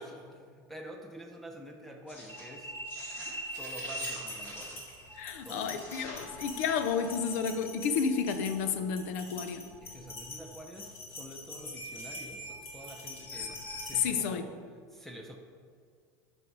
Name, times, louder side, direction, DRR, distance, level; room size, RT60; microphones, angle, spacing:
voice 1, 0.0-2.8 3.6-4.9 5.4-5.8 6.2-6.4 9.8-14.6 14.9-15.4, right 1 dB, 5° left, 3 dB, 0.5 m, -48 dB
sound 1, 2.1-14.0, left 1 dB, 25° left, 2.0 m, -42 dB
voice 2, 5.2-9.7 13.9-14.5, left 6 dB, 65° left, 9 dB, 0.8 m, -31 dB
13.5 x 5.5 x 4.6 m, 2.1 s
supercardioid pair, 170°, 9 cm